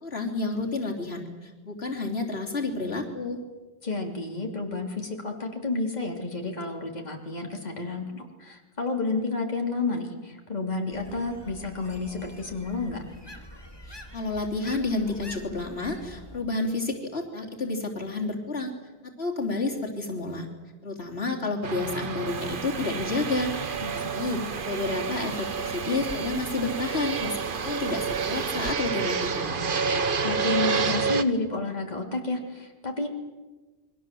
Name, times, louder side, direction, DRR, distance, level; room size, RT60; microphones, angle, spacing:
voice 1, 0.0-3.4 13.9-18.7 19.2-20.5 20.8-24.4 24.6-29.6, left 3 dB, 80° left, 0 dB, 3.4 m, -30 dB
voice 2, 3.8-13.0 23.8-24.5 30.2-33.1, left 3 dB, 45° left, 1 dB, 3.4 m, -31 dB
sound 1, 10.9-16.4, equal, 25° left, 2.7 m, -46 dB
Fixed-wing aircraft airplane, 21.6-31.2, right 5 dB, 55° right, 1.3 m, -29 dB
sound 2, 22.3-28.7, right 5 dB, 85° right, 1.5 m, -42 dB
29.0 x 23.5 x 7.7 m, 1.2 s
omnidirectional pair, 1.0 m